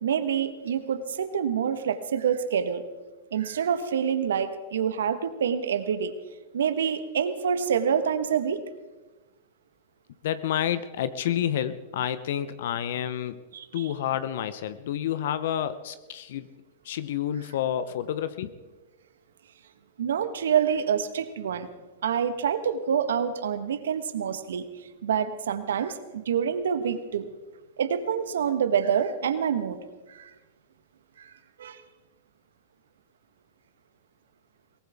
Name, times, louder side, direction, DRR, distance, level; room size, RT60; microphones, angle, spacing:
voice 1, 0.0-2.8 3.3-6.1 6.5-8.6 13.5-13.9 20.0-21.7 22.0-24.7 25.0-27.3 27.8-29.8 30.1-30.3 31.2-31.3 31.6-31.8, right 7 dB, 75° right, 11 dB, 1.3 m, -27 dB
voice 2, 10.2-13.4 13.7-16.5 16.8-18.5, left 10 dB, 65° left, 14 dB, 0.8 m, -29 dB
22.0 x 18.5 x 3.6 m, 1.2 s
hypercardioid pair, 110°, 0 cm